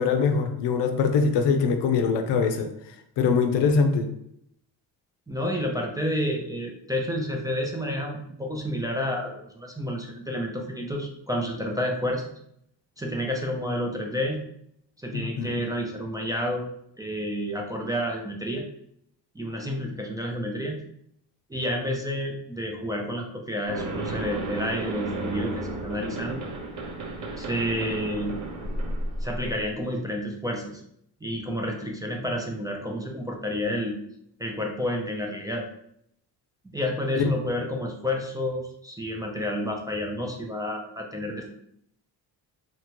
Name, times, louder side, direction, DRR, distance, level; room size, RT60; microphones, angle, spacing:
voice 1, 0.0-2.7 3.2-4.1 15.1-15.6 37.2-37.3, left 5 dB, 80° left, 6 dB, 0.5 m, -23 dB
voice 2, 5.3-12.4 13.0-14.4 15.0-16.7 17.0-18.7 19.3-20.8 21.5-26.4 27.4-28.4 29.2-30.8 31.2-33.9 34.4-35.6 36.7-41.5, equal, 10° right, -1 dB, 0.3 m, -30 dB
sound 1, 23.7-29.7, right 2 dB, 50° right, 0.6 m, -33 dB
2.9 x 2.2 x 2.9 m, 0.72 s
cardioid pair, 95°, 41 cm